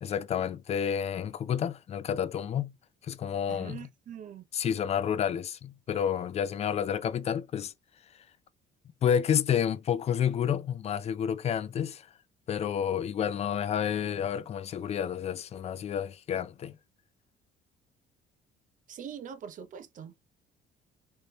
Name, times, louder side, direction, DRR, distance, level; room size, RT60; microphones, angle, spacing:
voice 1, 0.0-2.7 3.0-3.8 4.5-7.7 9.0-12.1 12.5-16.7, left 8 dB, 40° left, 0.4 m, -30 dB
voice 2, 3.5-4.5 18.9-20.3, right 8 dB, 50° right, 0.6 m, -43 dB
3.3 x 2.7 x 3.1 m
cardioid pair, 110°, 17 cm